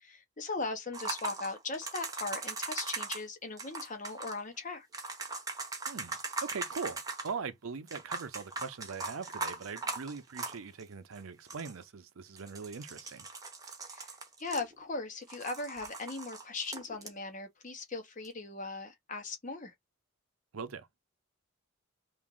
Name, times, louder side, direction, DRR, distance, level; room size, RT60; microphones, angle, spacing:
voice 1, 0.0-4.9 13.9-14.1 14.4-19.7, left 3 dB, 40° left, 0.9 m, -39 dB
sound 1, 0.9-3.2 3.6-4.4 4.9-7.3 7.9-10.8 11.1-11.2 11.4-11.8 12.4-15.0 15.3-17.1 18.2-18.3, right 3 dB, 15° right, 0.7 m, -40 dB
voice 2, 5.9-13.3 20.5-20.9, right 5 dB, 85° right, 0.6 m, -41 dB
2.9 x 2.5 x 3.7 m
head